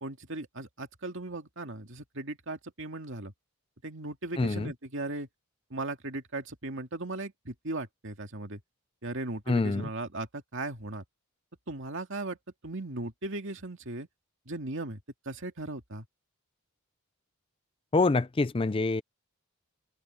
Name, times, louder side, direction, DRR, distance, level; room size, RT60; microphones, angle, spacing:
voice 1, 0.0-3.3 3.8-5.3 5.7-8.6 9.0-11.0 11.7-12.4 12.6-14.1 14.5-15.0 15.3-16.1, right 2 dB, 55° right, 2.4 m, -37 dB
voice 2, 4.4-4.7 9.5-9.9 17.9-19.0, left 3 dB, 25° left, 0.4 m, -26 dB
head